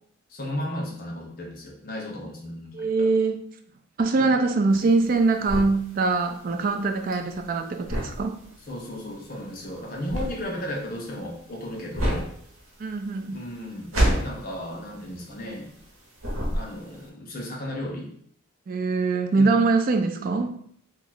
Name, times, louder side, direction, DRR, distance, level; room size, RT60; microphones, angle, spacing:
voice 1, 0.3-3.1 4.2-4.3 8.7-12.3 13.2-13.9 14.2-15.7 16.5-18.1 19.3-19.6, left 1 dB, 40° left, -1 dB, 0.7 m, -34 dB
voice 2, 2.7-3.4 4.0-8.3 12.8-13.4 18.7-20.6, right 3 dB, 40° right, 5 dB, 0.3 m, -23 dB
sound 1, 4.7-15.9 16.2-17.0, equal, 80° right, 1.0 m, -29 dB
3.0 x 2.3 x 3.8 m, 0.63 s
head